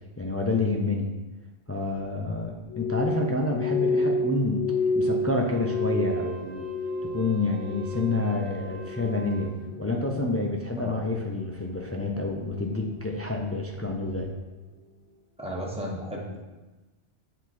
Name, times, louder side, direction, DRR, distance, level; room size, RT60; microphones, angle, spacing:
voice 1, 0.2-1.1 1.7-4.6 4.9-6.6 7.0-9.5 9.8-14.3, left 2 dB, 25° left, 1 dB, 0.3 m, -28 dB
Glass, 2.7-7.3 7.6-8.2 8.6-9.2 9.7-10.0, left 2 dB, 80° left, 0.9 m, -29 dB
sound 1, 3.4-15.3, left 2 dB, 50° left, 1.4 m, -48 dB
Wind instrument woodwind instrument, 5.4-9.6, right 7 dB, 45° right, 0.6 m, -47 dB
voice 2, 15.4-16.4, equal, 5° right, -3 dB, 1.1 m, -34 dB
7.2 x 3.9 x 4.2 m, 1.1 s
omnidirectional pair, 1.2 m